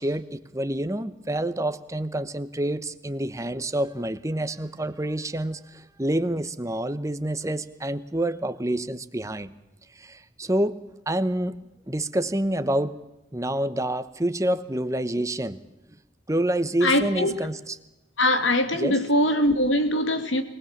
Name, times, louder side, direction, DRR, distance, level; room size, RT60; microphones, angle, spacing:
voice 1, 0.0-9.5 10.0-10.8 11.1-11.6 11.9-13.0 13.3-15.6 15.9-16.0 16.3-17.8 18.8-19.0, right 1 dB, 15° right, 0.9 m, -27 dB
voice 2, 16.8-17.4 18.2-20.4, left 1 dB, 85° left, 2.4 m, -22 dB
23.5 x 19.0 x 7.3 m
head